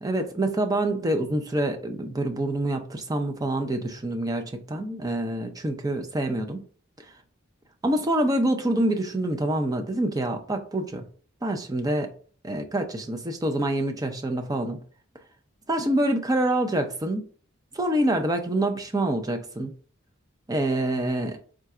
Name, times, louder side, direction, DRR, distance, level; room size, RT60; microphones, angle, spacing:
voice 1, 0.0-6.6 7.8-11.0 11.4-12.1 12.4-14.8 15.7-17.2 17.7-19.7 20.5-21.4, right 1 dB, 20° right, 0.5 m, -26 dB
3.7 x 2.4 x 4.2 m
head